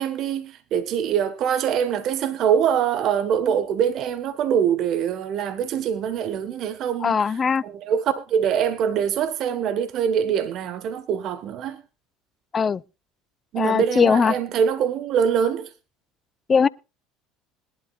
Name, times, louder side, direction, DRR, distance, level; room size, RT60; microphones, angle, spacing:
voice 1, 0.0-7.2 7.6-11.8 13.5-15.7, right 8 dB, 55° right, 1.5 m, -24 dB
voice 2, 7.0-7.6 12.5-12.8 13.5-14.4 16.5-16.7, left 6 dB, 30° left, 0.6 m, -20 dB
21.5 x 12.0 x 2.5 m
hypercardioid pair, 85°, 0 cm